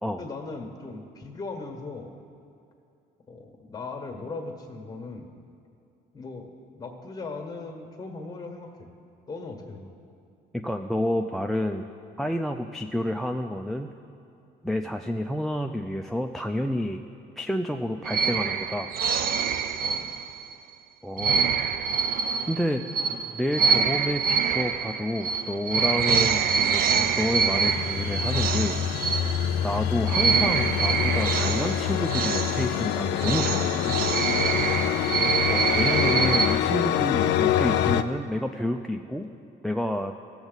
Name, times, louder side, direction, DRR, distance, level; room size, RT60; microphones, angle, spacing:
voice 1, 0.2-2.1 3.3-5.4 6.1-8.9 9.3-9.9 14.8-14.9 19.8-20.0, left 3 dB, 20° left, 3 dB, 1.4 m, -38 dB
voice 2, 10.5-11.8 12.2-13.9 14.6-17.0 17.4-18.9 21.0-21.9 22.5-22.8 23.3-28.8 29.6-33.9 35.5-39.3 39.6-40.1, left 1 dB, ahead, 5 dB, 0.3 m, -29 dB
sound 1, 18.0-20.5 21.2-29.7 30.1-36.6, right 6 dB, 60° right, 0.5 m, -26 dB
sound 2, 26.5-38.0, left 10 dB, 85° left, 0.4 m, -26 dB
16.0 x 7.1 x 4.0 m, 2.6 s
cardioid pair, 110°, 17 cm